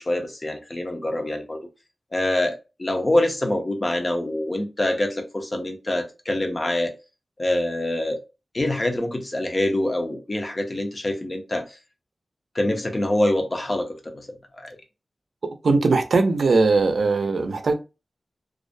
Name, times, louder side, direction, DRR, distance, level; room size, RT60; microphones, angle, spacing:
voice 1, 0.0-1.6 2.1-6.9 7.4-8.2 8.5-11.7 12.5-14.3 14.6-14.8, left 1 dB, 30° left, 0.5 m, -25 dB
voice 2, 15.6-17.7, right 3 dB, 80° right, 0.4 m, -19 dB
2.4 x 2.0 x 2.5 m
wide cardioid pair, 105°, 0 cm